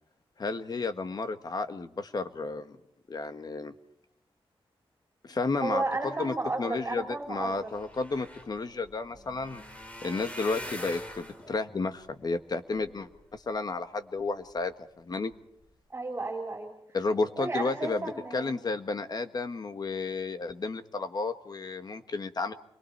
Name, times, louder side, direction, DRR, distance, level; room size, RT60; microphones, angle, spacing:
voice 1, 0.4-2.7 3.1-3.7 5.2-5.8 6.2-9.6 10.0-15.3 16.9-18.0 18.3-22.5, left 3 dB, 45° left, 9 dB, 1.6 m, -32 dB
voice 2, 5.6-7.7 15.9-16.7 17.4-18.6, right 2 dB, 25° right, 2 dB, 4.1 m, -33 dB
sound 1, 7.5-13.7 14.3-14.7 15.1-15.3 15.6-15.7, left 1 dB, 15° left, 3.0 m, -45 dB
28.5 x 22.5 x 4.6 m, 0.73 s
wide cardioid pair, 150°, 10 cm